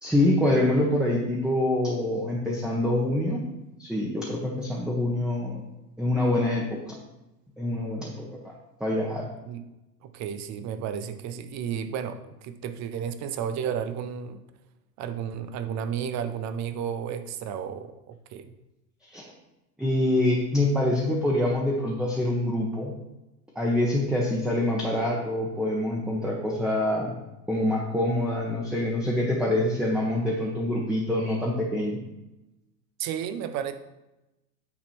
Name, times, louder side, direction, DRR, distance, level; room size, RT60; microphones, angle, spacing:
voice 1, 0.0-3.4 3.8-5.6 6.0-7.0 7.6-8.1 8.4-8.5 8.8-9.3 19.1-19.3 19.8-22.9 23.5-27.1 27.5-32.0, left 1 dB, ahead, -3 dB, 1.2 m, -25 dB
voice 2, 10.0-14.4 15.0-18.5 33.0-33.7, right 8 dB, 35° right, 10 dB, 0.8 m, -32 dB
9.3 x 4.2 x 4.4 m, 0.98 s
hypercardioid pair, 90°, 50 cm